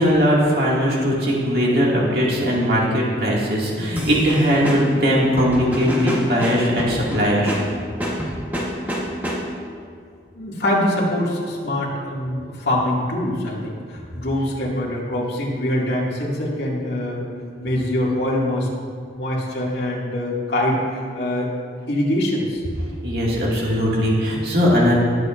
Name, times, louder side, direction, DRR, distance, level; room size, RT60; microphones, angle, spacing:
voice 1, 0.0-7.6 23.0-24.9, equal, 60° right, -5 dB, 2.2 m, -19 dB
sound 1, 3.9-9.7, equal, 10° right, 1.2 m, -28 dB
voice 2, 10.3-17.3 17.6-18.7 19.1-21.5 21.9-22.6, left 1 dB, 70° left, -5 dB, 2.2 m, -24 dB
19.5 x 7.5 x 2.6 m, 2.2 s
head